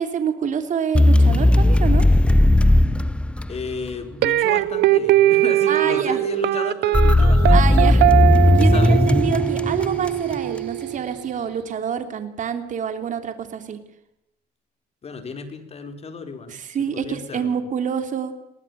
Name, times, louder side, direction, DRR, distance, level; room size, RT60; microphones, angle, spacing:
voice 1, 0.0-2.0 5.7-6.2 7.5-8.0 8.5-13.8 16.5-18.3, right 7 dB, 50° right, 8 dB, 3.2 m, -27 dB
sound 1, 0.9-3.9 6.9-10.4, left 1 dB, 5° left, 0.9 m, -16 dB
voice 2, 3.5-8.0 8.6-9.0 15.0-16.6 16.9-17.6, left 5 dB, 40° left, 7 dB, 4.3 m, -33 dB
sound 2, 4.2-11.3, right 16 dB, 75° right, 0.9 m, -21 dB
21.5 x 19.0 x 9.2 m, 0.81 s
cardioid pair, 110°, 17 cm